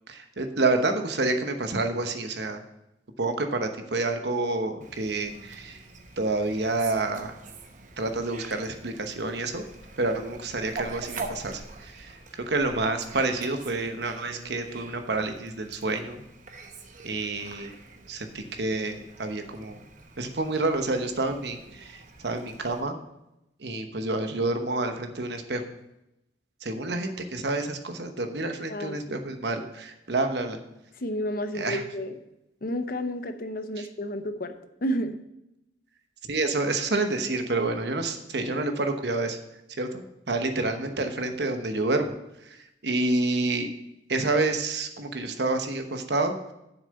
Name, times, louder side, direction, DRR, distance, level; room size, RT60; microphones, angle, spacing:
voice 1, 0.1-2.6 3.2-5.8 6.2-7.3 8.0-9.6 10.0-16.2 17.0-17.7 18.1-19.8 20.2-23.0 23.6-25.6 26.6-30.6 31.5-31.8 33.8-33.9 36.2-39.4 39.7-42.1 42.4-43.7 44.1-46.5, right 2 dB, 65° right, 6 dB, 1.1 m, -28 dB
Fowl, 4.8-22.8, right 3 dB, 45° right, 0.9 m, -45 dB
voice 2, 28.7-29.2 31.0-32.1 32.6-34.5 34.8-35.2, equal, 55° left, 9 dB, 0.8 m, -31 dB
7.3 x 6.7 x 6.5 m, 0.88 s
head